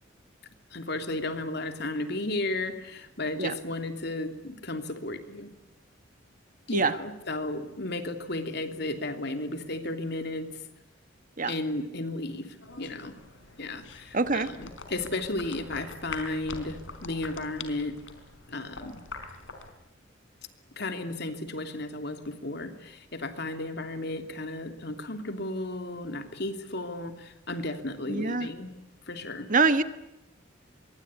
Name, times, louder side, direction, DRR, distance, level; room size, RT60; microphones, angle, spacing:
voice 1, 0.7-5.5 6.7-10.6 11.5-13.1 13.6-18.0 18.5-19.0 20.8-28.7 29.1-29.5, left 2 dB, 55° left, 7 dB, 3.0 m, -34 dB
sound 1, 12.6-19.7, left 4 dB, 75° left, 4.3 m, -44 dB
voice 2, 14.1-14.5 28.1-28.5 29.5-29.8, right 4 dB, 40° right, 11 dB, 1.4 m, -24 dB
25.5 x 23.0 x 9.8 m, 0.92 s
head